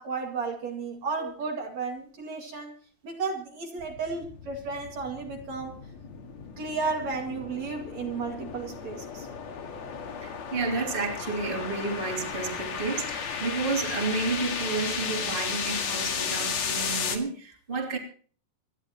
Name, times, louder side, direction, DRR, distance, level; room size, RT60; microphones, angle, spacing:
voice 1, 0.0-2.7 3.0-5.7 6.6-9.3, right 4 dB, 55° right, 2 dB, 3.2 m, -33 dB
sound 1, 3.8-17.2, left 6 dB, 55° left, 2.8 m, -34 dB
voice 2, 10.2-18.0, right 3 dB, 15° right, 1 dB, 2.9 m, -31 dB
27.0 x 11.5 x 3.0 m, 0.43 s
omnidirectional pair, 3.9 m